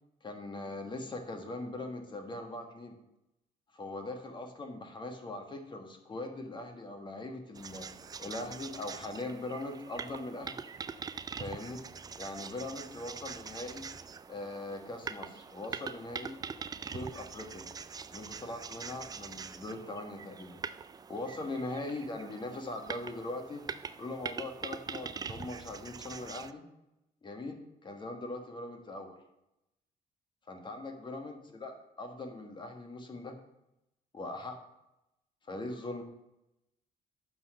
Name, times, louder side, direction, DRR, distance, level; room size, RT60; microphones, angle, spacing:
voice 1, 0.2-3.0 3.7-7.9 8.2-10.5 11.3-11.8 12.2-13.9 14.3-16.4 16.9-17.6 18.1-20.6 21.1-23.6 24.0-26.6 27.2-29.2 30.5-33.3 34.1-34.6 35.5-36.0, left 2 dB, 25° left, 4 dB, 1.4 m, -41 dB
sound 1, 7.5-26.5, right 5 dB, 20° right, 0.3 m, -43 dB
9.3 x 4.1 x 6.5 m, 0.87 s
cardioid pair, 110°, 17 cm